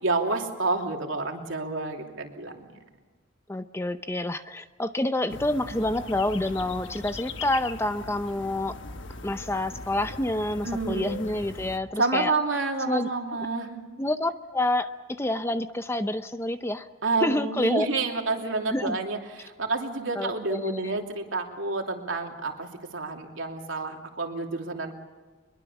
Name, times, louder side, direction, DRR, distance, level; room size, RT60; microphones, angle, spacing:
voice 1, 0.0-2.7 10.6-11.2 12.0-13.8 17.0-22.7 22.9-24.9, right 3 dB, 75° right, 2 dB, 3.0 m, -29 dB
voice 2, 3.5-8.7 9.2-12.3 12.8-13.1 14.0-16.9 17.2-17.9 18.7-19.0 20.2-20.9, left 1 dB, 15° left, 10 dB, 0.6 m, -28 dB
sound 1, 5.3-11.8, left 3 dB, 65° left, 1.3 m, -40 dB
23.5 x 22.0 x 7.2 m, 1.4 s
head